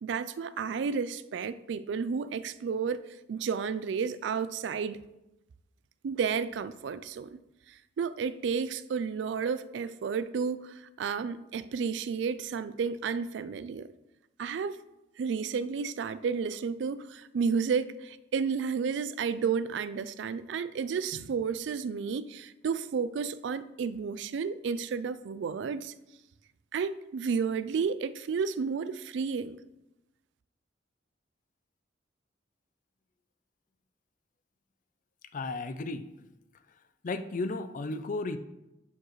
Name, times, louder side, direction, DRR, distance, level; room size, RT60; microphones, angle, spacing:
voice 1, 0.0-3.0 3.3-5.0 6.0-7.3 8.0-13.9 14.4-14.8 15.2-25.9 26.7-29.6, right 6 dB, 70° right, 0.3 m, -32 dB
voice 2, 35.3-36.1 37.0-38.4, left 3 dB, 45° left, 0.4 m, -34 dB
11.0 x 4.7 x 3.1 m
head